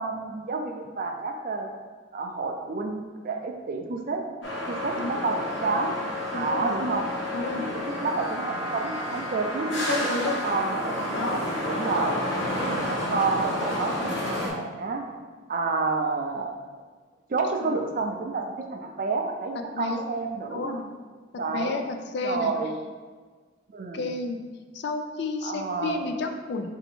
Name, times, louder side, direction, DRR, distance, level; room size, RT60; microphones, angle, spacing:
voice 1, 0.0-1.7 2.1-4.2 4.7-5.0 5.2-5.9 6.3-7.1 7.5-10.1 10.4-11.4 11.6-12.2 12.6-15.0 15.5-16.5 17.3-20.7 21.4-21.8 22.2-22.8 23.7-24.0 25.4-26.0, right 3 dB, 45° right, 2 dB, 0.5 m, -29 dB
sound 1, 4.4-14.5, left 1 dB, 80° left, 1.1 m, -30 dB
voice 2, 6.3-6.7 7.3-7.7 9.9-10.4 11.1-11.5 13.1-13.2 17.6-17.7 19.5-20.1 20.5-20.9 21.5-22.5 23.9-24.4 24.7-26.7, left 3 dB, 60° left, 6 dB, 0.4 m, -31 dB
4.4 x 2.8 x 4.2 m, 1.5 s
head